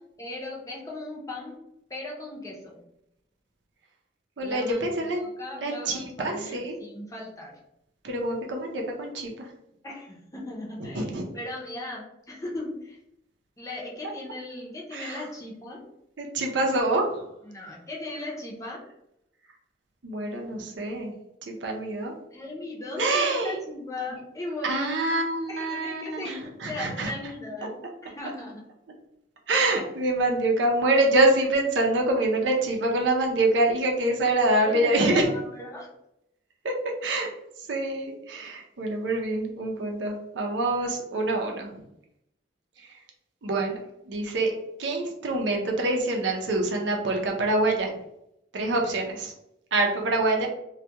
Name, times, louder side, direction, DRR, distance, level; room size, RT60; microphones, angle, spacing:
voice 1, 0.2-1.6 1.9-2.8 4.4-5.1 5.4-7.5 9.8-11.1 11.3-13.0 13.6-15.8 17.4-18.8 22.3-25.0 25.5-28.6 34.6-35.9, left 2 dB, 20° left, -3 dB, 0.5 m, -37 dB
voice 2, 4.4-5.2 5.6-6.8 8.0-9.5 10.8-11.3 14.9-15.3 16.2-17.2 20.0-21.1 21.4-22.2 23.0-23.5 24.1-24.2 24.7-27.1 29.5-35.3 36.6-37.3 37.6-41.8 42.8-42.9 43.4-43.8 44.0-44.5 44.8-48.0 48.5-49.3 49.7-50.5, right 2 dB, 85° right, 1 dB, 0.6 m, -26 dB
2.3 x 2.2 x 2.8 m, 0.80 s
head